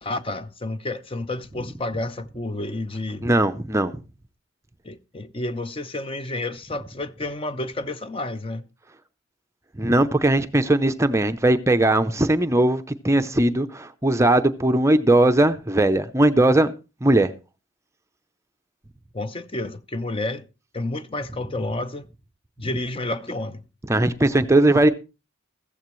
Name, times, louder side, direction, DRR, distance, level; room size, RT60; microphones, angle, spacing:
voice 1, 0.0-3.3 4.8-8.7 19.1-20.4 20.7-22.1 22.6-23.6, left 2 dB, 25° left, 0.7 m, -30 dB
voice 2, 3.2-3.9 9.8-16.7 17.0-17.3 23.9-24.9, right 1 dB, 15° right, 0.6 m, -19 dB
15.0 x 14.5 x 3.1 m
head